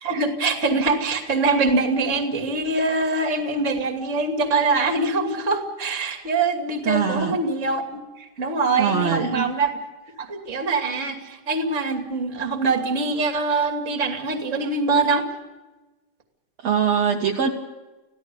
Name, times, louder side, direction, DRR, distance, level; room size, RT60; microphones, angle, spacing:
voice 1, 0.0-7.8 8.2-9.7 10.2-15.3, right 3 dB, 25° right, 4 dB, 2.5 m, -23 dB
voice 2, 6.9-7.4 8.8-9.5 16.6-17.5, right 7 dB, 55° right, 0 dB, 2.4 m, -22 dB
25.5 x 16.5 x 7.0 m, 1.1 s
omnidirectional pair, 3.9 m